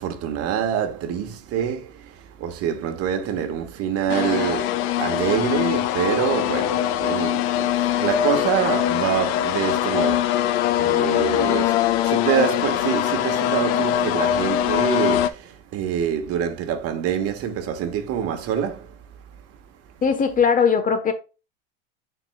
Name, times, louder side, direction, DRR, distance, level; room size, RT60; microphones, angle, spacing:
voice 1, 0.0-19.0, right 8 dB, 45° right, 1.5 m, -26 dB
sound 1, 4.1-15.3, left 12 dB, 70° left, 0.9 m, -22 dB
voice 2, 20.0-21.1, left 6 dB, 25° left, 1.0 m, -19 dB
10.0 x 4.6 x 2.2 m
supercardioid pair, 125°, 33 cm